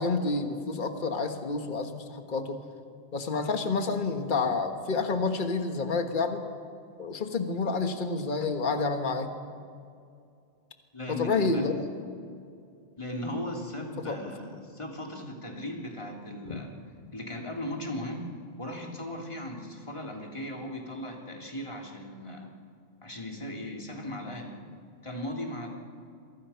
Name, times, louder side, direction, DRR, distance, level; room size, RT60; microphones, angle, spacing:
voice 1, 0.0-2.6 3.1-6.4 7.0-9.3 11.1-11.9 14.1-14.2 16.4-16.6, left 4 dB, 40° left, 6 dB, 1.6 m, -29 dB
voice 2, 10.9-11.6 13.0-18.3 18.6-22.5 23.0-24.6 25.0-25.7, left 1 dB, 25° left, 0 dB, 3.2 m, -37 dB
28.5 x 24.0 x 5.8 m, 2.4 s
omnidirectional pair, 1.2 m